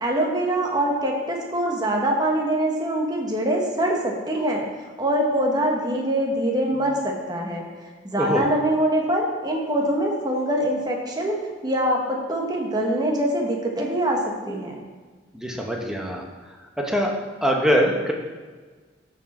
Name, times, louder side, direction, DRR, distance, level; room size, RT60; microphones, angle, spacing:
voice 1, 0.0-4.6 5.0-7.7 8.0-11.4 11.6-14.8, right 1 dB, 20° right, 0 dB, 1.3 m, -24 dB
voice 2, 8.1-8.5 15.3-16.2 16.8-17.1 17.4-18.1, equal, 5° right, 0 dB, 1.0 m, -23 dB
13.5 x 4.8 x 4.3 m, 1.4 s
head